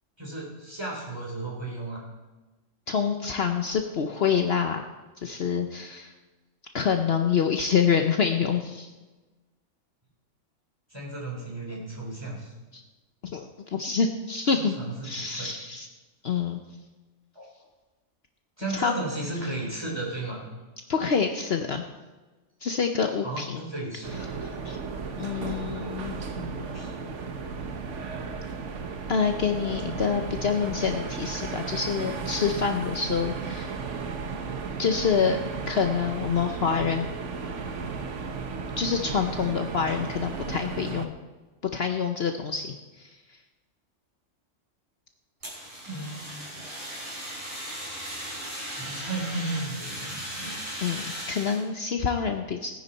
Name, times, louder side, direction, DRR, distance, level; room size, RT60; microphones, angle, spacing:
voice 1, 0.2-2.0 10.9-12.5 14.5-15.5 17.3-17.4 18.6-20.4 23.2-24.3 26.3-27.2 29.8-30.3 45.8-46.6 48.8-50.6, right 2 dB, 20° right, -3 dB, 3.8 m, -35 dB
voice 2, 2.9-4.9 5.2-6.1 6.7-8.9 12.7-12.8 13.2-14.7 15.0-15.9 16.2-16.6 18.7-18.9 20.9-21.8 22.6-23.6 24.4-24.8 25.2-26.1 29.1-33.7 34.8-35.4 35.7-37.1 38.8-41.1 41.7-43.1 50.8-52.8, left 6 dB, 55° left, 5 dB, 1.0 m, -26 dB
sound 1, 24.0-41.1, right 5 dB, 70° right, 1.3 m, -34 dB
Fire, 45.4-51.6, equal, 45° right, 4.4 m, -37 dB
17.5 x 10.0 x 4.1 m, 1.2 s
omnidirectional pair, 1.3 m